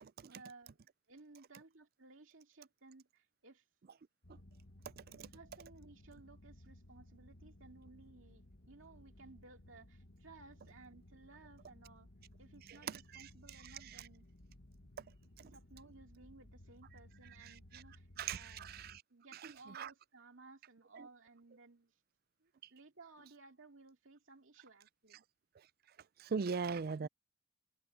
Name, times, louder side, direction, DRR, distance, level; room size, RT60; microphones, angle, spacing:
voice 1, 0.3-3.6 5.1-12.1 12.4-14.3 15.4-18.6 19.1-21.9 22.4-25.2 27.0-27.1, right 3 dB, 65° right, 2.4 m, -59 dB
sound 1, 4.2-19.0, left 1 dB, 55° left, 1.5 m, -59 dB
voice 2, 18.2-18.9 19.7-19.9 26.2-27.1, right 5 dB, 45° right, 0.4 m, -38 dB
head